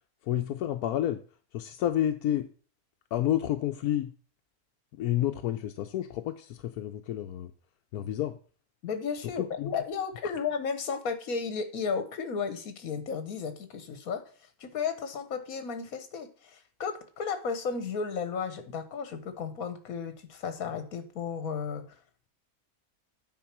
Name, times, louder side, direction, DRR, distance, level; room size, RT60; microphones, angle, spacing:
voice 1, 0.3-1.2 1.5-2.5 3.1-4.1 5.0-7.5 7.9-8.3 9.4-9.7, left 12 dB, 85° left, 6 dB, 1.1 m, -30 dB
voice 2, 8.8-14.2 14.6-21.8, left 5 dB, 70° left, 9 dB, 1.5 m, -34 dB
9.1 x 4.5 x 5.9 m, 0.40 s
omnidirectional pair, 1.6 m